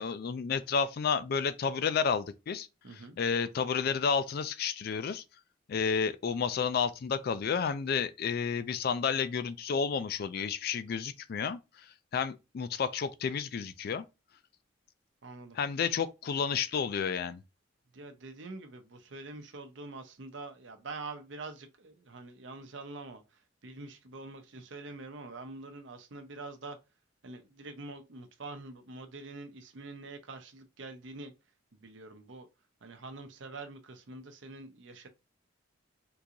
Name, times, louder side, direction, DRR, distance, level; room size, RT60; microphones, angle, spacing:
voice 1, 0.0-2.7 3.2-5.2 5.7-11.6 12.1-14.0 15.6-17.4, left 6 dB, 55° left, 0.3 m, -31 dB
voice 2, 2.8-3.2 15.2-15.6 17.9-26.8 27.2-31.3 31.7-32.5 32.8-35.1, right 3 dB, 70° right, 0.7 m, -45 dB
3.7 x 2.5 x 2.9 m
head